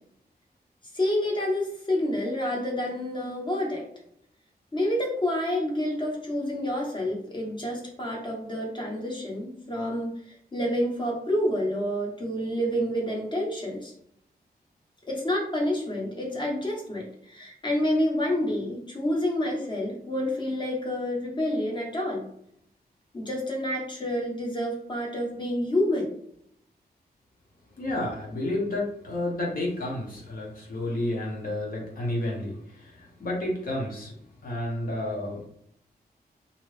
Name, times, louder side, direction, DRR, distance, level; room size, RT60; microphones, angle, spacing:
voice 1, 0.9-3.8 4.7-13.9 15.1-22.3 23.1-26.1, left 1 dB, 30° left, -1 dB, 0.9 m, -28 dB
voice 2, 27.8-34.1 34.4-35.5, left 1 dB, 65° left, -2 dB, 1.0 m, -31 dB
2.7 x 2.4 x 3.2 m, 0.71 s
wide cardioid pair, 155°, 16 cm